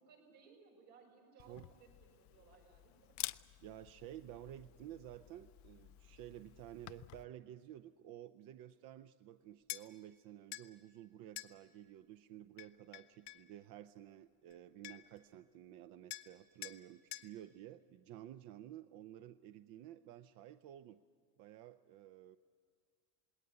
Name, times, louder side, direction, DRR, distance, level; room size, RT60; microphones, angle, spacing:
voice 1, 0.0-3.2, right 5 dB, 85° right, 0 dB, 6.4 m, -63 dB
Camera, 1.4-7.2, left 17 dB, 45° left, 0.5 m, -51 dB
voice 2, 3.6-21.0 21.4-22.4, right 12 dB, 55° right, 12 dB, 0.6 m, -53 dB
sound 1, 9.7-9.9 10.5-10.7 11.4-11.5 12.6-13.5 14.5-14.6 14.8-15.2 16.1-16.3 16.6-16.8 17.1-17.3, left 18 dB, 70° left, 1.0 m, -47 dB
20.0 x 18.5 x 9.4 m, 2.1 s
cardioid pair, 135°, 41 cm